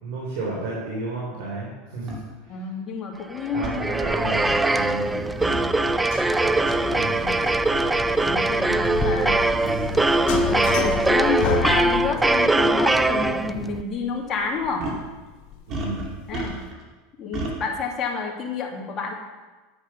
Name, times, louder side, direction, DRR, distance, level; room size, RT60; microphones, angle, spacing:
voice 1, 0.0-2.7 3.5-6.0 6.7-7.5 8.5-10.1 10.4-10.9 15.7-16.1, right 2 dB, 65° right, -4 dB, 3.4 m, -33 dB
sound 1, 2.1-2.2 3.6-3.8 5.4-5.7 7.4-7.6 8.5-8.6 9.4-9.5 9.7-9.9 11.2-11.3 12.7-12.9 13.2-13.3 14.8-15.1 15.7-16.8 17.3-17.6, right 2 dB, 40° right, 2.5 m, -32 dB
voice 2, 2.5-3.8 8.2-8.8 9.0-9.5 10.4-14.9 16.3-16.6 17.2-19.1, left 5 dB, 30° left, 0 dB, 2.3 m, -29 dB
sound 2, 3.4-13.8, right 2 dB, 10° right, 0.4 m, -22 dB
sound 3, 4.5-16.7, left 7 dB, 60° left, 1.5 m, -33 dB
10.5 x 8.5 x 5.8 m, 1.3 s
supercardioid pair, 130°, 0 cm